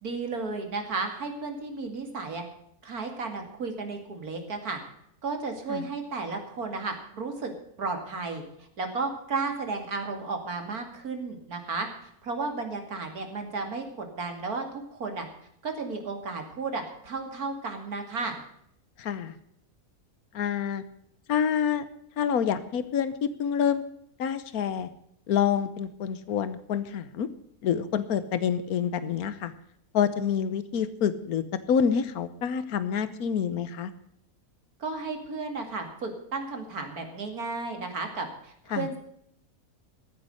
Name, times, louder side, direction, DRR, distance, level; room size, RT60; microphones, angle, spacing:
voice 1, 0.0-2.4 2.8-4.8 5.2-11.9 12.2-15.3 15.6-18.4 34.8-39.0, right 4 dB, 80° right, 5 dB, 3.0 m, -33 dB
voice 2, 19.0-19.3 20.3-20.8 21.3-21.9 22.2-23.8 24.2-24.9 25.3-27.3 27.6-29.5 29.9-31.4 31.7-33.9 38.7-38.9, left 8 dB, 75° left, 13 dB, 1.4 m, -27 dB
15.5 x 9.7 x 6.5 m, 0.73 s
omnidirectional pair, 1.6 m